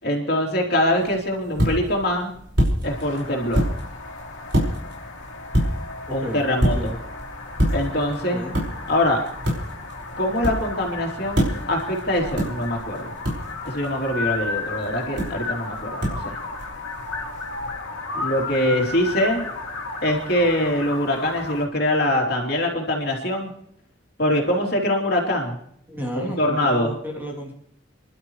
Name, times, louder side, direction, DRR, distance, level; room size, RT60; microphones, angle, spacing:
voice 1, 0.0-2.3 2.8-3.7 6.1-6.9 7.7-8.4 8.9-9.2 10.2-11.4 11.7-13.1 13.6-16.4 18.1-19.4 20.0-23.5 24.2-25.6 26.1-26.9, left 1 dB, 55° left, 0 dB, 3.1 m, -23 dB
sound 1, 0.9-17.7, equal, 60° right, 5.0 m, -28 dB
sound 2, 2.8-21.6, left 3 dB, 75° left, 2.7 m, -34 dB
voice 2, 6.1-7.0 8.3-8.6 25.9-27.5, equal, 10° right, -2 dB, 2.9 m, -33 dB
29.5 x 12.0 x 3.2 m, 0.69 s
head